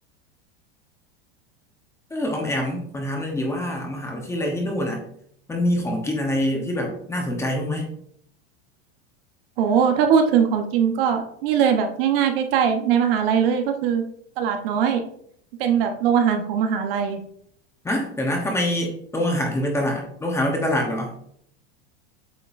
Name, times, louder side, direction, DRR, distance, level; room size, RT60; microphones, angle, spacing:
voice 1, 2.1-5.0 5.5-7.9 17.8-21.1, left 1 dB, 10° left, 1 dB, 1.0 m, -25 dB
voice 2, 9.6-14.0 14.4-15.0 15.6-17.2, right 7 dB, 65° right, 5 dB, 1.1 m, -21 dB
8.3 x 5.3 x 2.6 m, 0.66 s
supercardioid pair, 155°, 30 cm